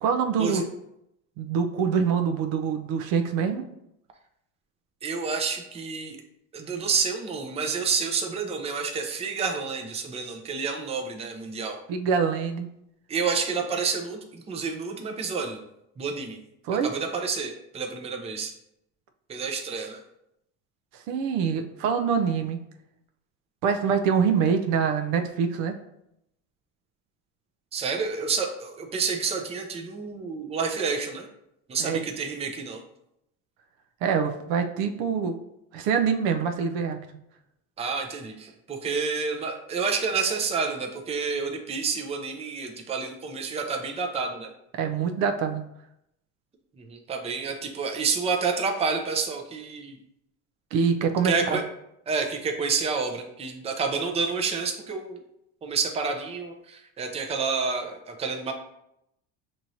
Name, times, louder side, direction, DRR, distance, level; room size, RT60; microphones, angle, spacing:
voice 1, 0.0-0.6 1.4-3.6 11.9-12.7 16.7-16.9 21.1-22.6 23.6-25.8 31.8-32.0 34.0-35.4 35.7-37.0 44.7-45.6 50.7-51.6, right 6 dB, 65° right, 6 dB, 0.6 m, -25 dB
voice 2, 5.0-6.2 6.5-11.8 13.1-15.6 16.0-16.4 16.8-18.5 19.3-20.0 27.7-31.3 31.7-32.8 37.8-44.5 46.8-50.0 51.2-51.6 52.1-55.2 55.6-58.5, right 5 dB, 15° right, 3 dB, 0.5 m, -29 dB
6.1 x 3.0 x 2.7 m, 0.80 s
supercardioid pair, 120°, 38 cm